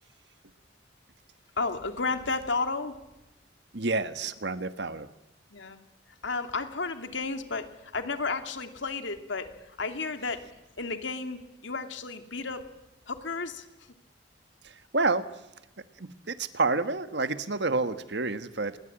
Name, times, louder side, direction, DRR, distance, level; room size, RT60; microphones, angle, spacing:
voice 1, 1.6-3.0 5.5-5.8 6.2-10.4 10.8-12.7 13.1-13.7, left 4 dB, 85° left, 7 dB, 2.6 m, -32 dB
voice 2, 3.7-5.1 14.6-15.3 16.0-18.8, right 3 dB, 70° right, 11 dB, 1.4 m, -29 dB
29.0 x 22.0 x 8.8 m, 0.95 s
head